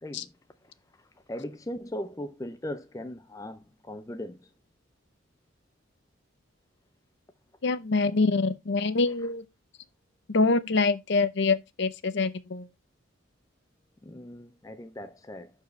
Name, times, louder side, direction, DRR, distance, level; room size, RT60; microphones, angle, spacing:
voice 1, 1.3-4.5 14.0-15.5, left 1 dB, 15° left, 0.4 m, -38 dB
voice 2, 7.6-9.4 10.3-12.7, left 3 dB, 55° left, 0.6 m, -25 dB
11.5 x 4.7 x 3.1 m
head